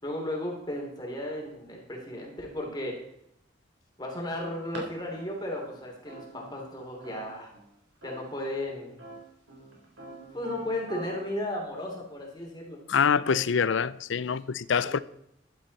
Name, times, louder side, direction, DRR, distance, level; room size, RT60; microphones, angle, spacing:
voice 1, 0.0-3.0 4.0-7.5 8.0-9.0 10.3-12.8 14.3-14.4 14.8-15.0, left 1 dB, 20° left, 3.0 m, -35 dB
sound 1, 4.7-4.8 5.1-7.7 8.0-8.5 9.0-11.3, right 1 dB, 80° right, 4.1 m, -43 dB
voice 2, 12.9-15.0, left 6 dB, 75° left, 0.5 m, -25 dB
14.5 x 11.0 x 4.2 m
head